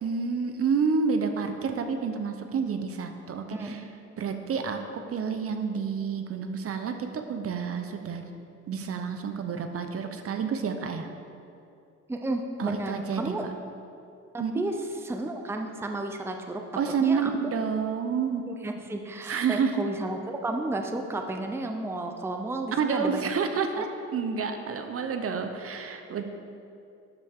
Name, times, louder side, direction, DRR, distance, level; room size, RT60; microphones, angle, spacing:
voice 1, 0.0-3.8 4.2-8.2 8.7-11.1 12.6-13.5 14.4-14.7 16.8-18.5 19.2-19.8 22.8-26.2, right 6 dB, 50° right, 6 dB, 0.7 m, -29 dB
voice 2, 12.1-13.4 14.3-14.7 15.0-16.6 17.0-17.3 18.5-23.3 23.8-23.9, right 2 dB, 10° right, 4 dB, 0.6 m, -32 dB
12.0 x 5.4 x 3.6 m, 2.6 s
cardioid pair, 90°, 30 cm